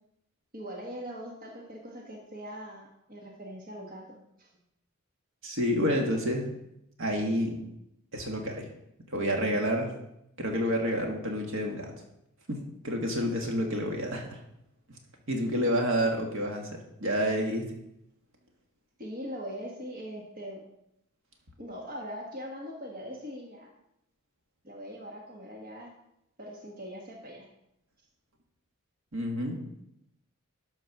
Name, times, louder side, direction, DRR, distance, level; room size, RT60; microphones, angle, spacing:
voice 1, 0.5-4.0 4.4-4.5 19.0-20.6 21.6-23.7 24.6-25.9 26.4-27.5, equal, 40° right, -1 dB, 1.4 m, -41 dB
voice 2, 5.4-6.5 7.0-7.6 8.1-8.7 9.1-9.9 10.4-11.9 12.5-14.4 15.3-17.6 29.1-29.6, equal, 65° right, 2 dB, 1.7 m, -29 dB
12.5 x 4.6 x 5.9 m, 0.81 s
head